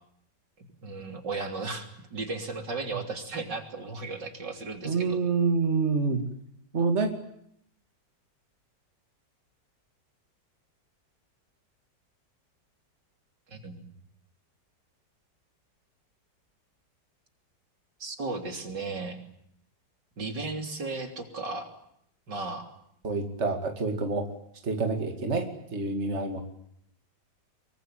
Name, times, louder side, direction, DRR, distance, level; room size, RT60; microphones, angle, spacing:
voice 1, 0.8-5.2 13.5-13.9 18.0-19.2 20.2-21.7 22.3-22.7, right 3 dB, 75° right, 5 dB, 3.9 m, -35 dB
voice 2, 4.8-6.2 6.7-7.1 23.0-24.3 24.6-26.4, right 4 dB, 40° right, 5 dB, 2.6 m, -27 dB
24.0 x 23.5 x 9.1 m, 0.72 s
omnidirectional pair, 1.9 m